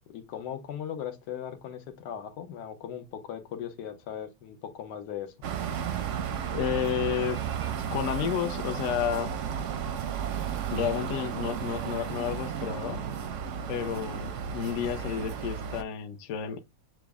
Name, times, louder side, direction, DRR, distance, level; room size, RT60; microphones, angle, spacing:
voice 1, 0.1-5.3, left 9 dB, 85° left, 1.4 m, -38 dB
sound 1, 5.4-15.8, right 8 dB, 65° right, 0.7 m, -33 dB
voice 2, 6.5-7.4 7.9-9.3 10.7-13.0 13.7-16.6, left 9 dB, 65° left, 0.8 m, -31 dB
6.0 x 2.0 x 3.4 m
omnidirectional pair, 1.8 m